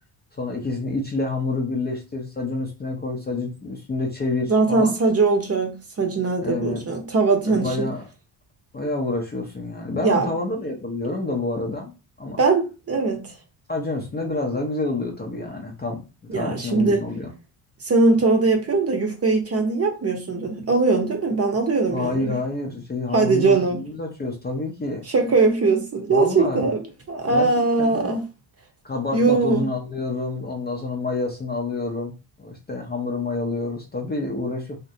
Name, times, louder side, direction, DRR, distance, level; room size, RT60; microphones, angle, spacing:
voice 1, 0.4-4.9 6.4-6.8 7.5-8.0 8.7-12.4 13.7-16.0 16.3-17.3 21.9-25.1 26.1-26.7 27.3-28.1 28.8-32.1 32.4-34.8, left 3 dB, 20° left, 0.5 m, -28 dB
voice 2, 4.5-7.9 10.0-10.4 12.4-13.2 16.3-17.0 17.8-22.4 23.1-23.8 25.1-28.3 29.1-29.6, right 3 dB, 30° right, 0.7 m, -21 dB
2.4 x 2.1 x 2.7 m
supercardioid pair, 75°, 49 cm